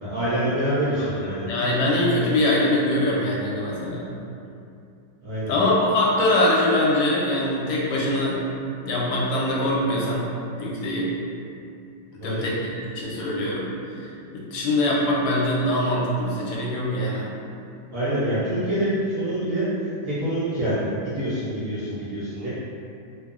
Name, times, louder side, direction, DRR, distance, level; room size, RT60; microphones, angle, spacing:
voice 1, 0.0-1.5 5.2-5.5 12.1-12.5 17.9-19.7 20.0-22.5, right 1 dB, 70° right, -11 dB, 0.7 m, -26 dB
voice 2, 1.0-4.1 5.5-8.5 8.8-10.3 10.6-11.1 12.2-13.7 14.0-14.1 14.3-17.3, left 1 dB, 75° left, -5 dB, 1.1 m, -23 dB
3.0 x 2.0 x 2.3 m, 2.5 s
omnidirectional pair, 2.0 m